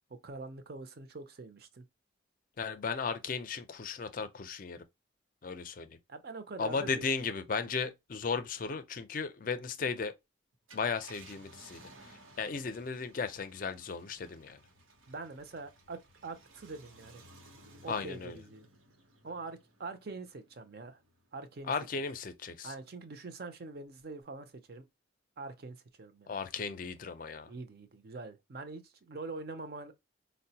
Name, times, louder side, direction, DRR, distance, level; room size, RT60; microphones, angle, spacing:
voice 1, 0.1-1.9 6.1-7.1 15.1-17.3 17.8-18.7 19.2-21.0 21.3-21.7 22.6-24.9 25.4-26.3 27.5-29.9, right 3 dB, 50° right, 0.5 m, -44 dB
voice 2, 2.6-4.8 5.4-6.0 6.6-10.2 10.7-14.6 17.9-18.4 21.7-22.7 26.3-27.5, left 5 dB, 45° left, 0.4 m, -36 dB
Car, 10.5-21.4 21.9-22.0 24.0-24.2, right 2 dB, 90° right, 0.8 m, -58 dB
4.5 x 2.1 x 2.7 m
head